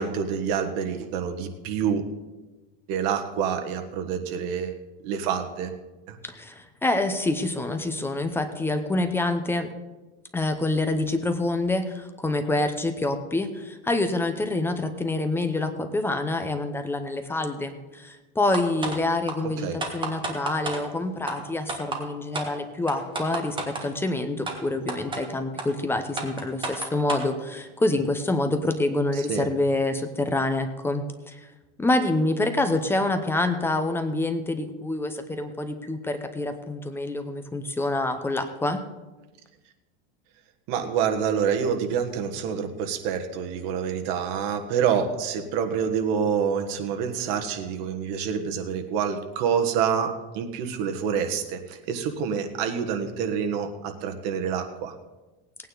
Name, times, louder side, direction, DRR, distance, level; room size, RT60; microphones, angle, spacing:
voice 1, 0.0-2.0 2.9-5.7 6.1-6.2 19.4-19.8 29.2-29.5 40.7-54.9, right 7 dB, 60° right, 5 dB, 1.5 m, -27 dB
voice 2, 6.2-9.7 10.3-31.5 31.8-38.8, left 2 dB, 10° left, 8 dB, 0.8 m, -27 dB
sound 1, 18.5-19.0 19.3-19.4 19.8-20.8 21.3-21.4 21.7-22.0 22.3-22.5 22.9-23.9 24.5-24.6 24.9-25.2 25.6-25.7 26.2-27.3, right 3 dB, 15° right, 1.5 m, -30 dB
17.5 x 9.2 x 4.0 m, 1.2 s
supercardioid pair, 145°, 30 cm